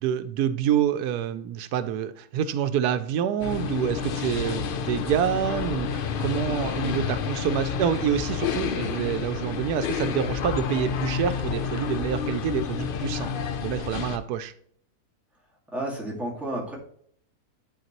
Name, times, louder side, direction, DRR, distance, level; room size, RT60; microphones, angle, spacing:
voice 1, 0.0-13.3 13.6-14.5, right 9 dB, 85° right, 1.1 m, -27 dB
sound 1, 3.4-14.2, left 6 dB, 70° left, 0.5 m, -29 dB
voice 2, 15.7-16.8, right 1 dB, ahead, 1.8 m, -31 dB
10.5 x 4.3 x 3.0 m
omnidirectional pair, 1.6 m